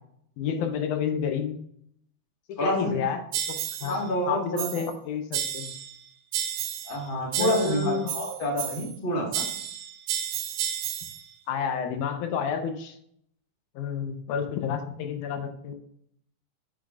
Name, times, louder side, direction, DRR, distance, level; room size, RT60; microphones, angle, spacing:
voice 1, 0.4-1.6 2.6-3.4 3.8-4.0 4.3-5.7 7.4-8.1 11.5-13.0 13.8-15.8, left 7 dB, 80° left, 6 dB, 2.2 m, -30 dB
voice 2, 2.6-3.0 3.8-4.7 6.9-9.4, equal, 35° left, -1 dB, 0.8 m, -28 dB
sound 1, 3.3-4.0 4.6-5.0 5.3-6.0 6.3-7.0 7.3-9.0 9.3-11.2, right 10 dB, 80° right, 2.2 m, -32 dB
9.6 x 6.2 x 2.4 m, 0.69 s
omnidirectional pair, 3.6 m